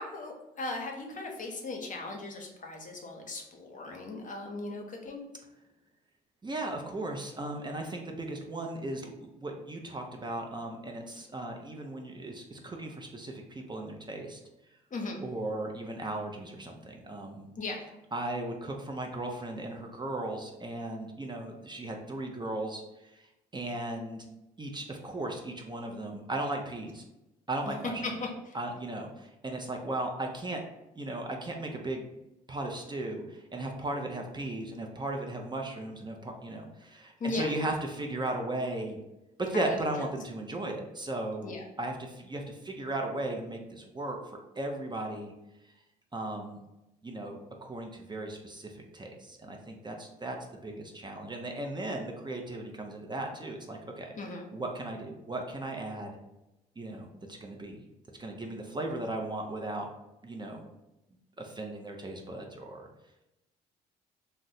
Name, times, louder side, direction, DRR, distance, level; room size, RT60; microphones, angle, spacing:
voice 1, 0.0-5.2 14.9-15.2 17.6-17.8 27.7-27.8 28.0-28.1 37.2-37.5 39.7-40.1 41.4-41.6 54.2-54.4, left 2 dB, 40° left, 2 dB, 0.8 m, -37 dB
voice 2, 6.4-14.4 15.2-17.5 18.1-23.3 23.5-24.2 24.6-27.0 27.5-28.0 28.5-30.6 30.9-32.1 32.5-39.0 39.4-44.2 44.6-45.3 46.1-46.6 47.0-50.4 50.6-54.1 54.5-56.1 56.8-57.1 57.4-57.8 58.2-59.9 60.2-60.6 61.4-62.9, right 2 dB, 25° right, 2 dB, 0.6 m, -36 dB
2.6 x 2.1 x 4.0 m, 0.93 s
hypercardioid pair, 55°, 19 cm